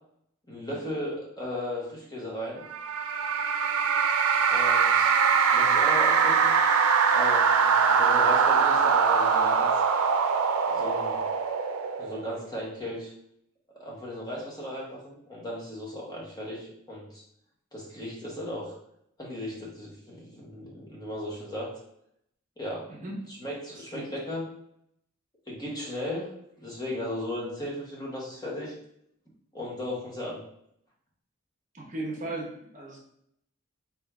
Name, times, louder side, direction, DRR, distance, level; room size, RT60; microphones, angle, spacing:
voice 1, 0.5-2.7 4.5-5.1 5.5-6.5 7.1-9.7 10.7-11.2 12.0-13.1 13.8-17.2 17.7-18.7 19.2-21.7 22.6-22.9 23.4-24.4 25.5-26.3 26.6-28.7 29.5-30.4, left 1 dB, 20° left, -4 dB, 1.1 m, -36 dB
sound 1, 2.7-12.4, right 6 dB, 85° right, 0.5 m, -23 dB
voice 2, 22.9-23.2 23.7-24.1 31.7-33.0, right 2 dB, 35° right, -2 dB, 0.9 m, -37 dB
4.2 x 3.5 x 3.5 m, 0.72 s
head